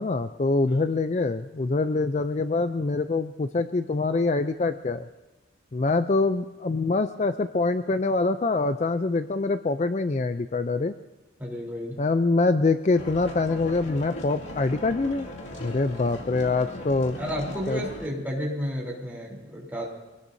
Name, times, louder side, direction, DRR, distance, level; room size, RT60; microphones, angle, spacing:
voice 1, 0.0-5.0 5.7-10.9 12.0-15.3 15.6-17.2 17.7-17.8, left 3 dB, 35° left, 10 dB, 0.4 m, -25 dB
voice 2, 11.4-12.0 17.2-19.8, equal, 10° right, -3 dB, 3.5 m, -32 dB
sound 1, 12.9-18.1, left 1 dB, 80° left, 2.3 m, -38 dB
24.0 x 18.0 x 2.7 m, 1.1 s
head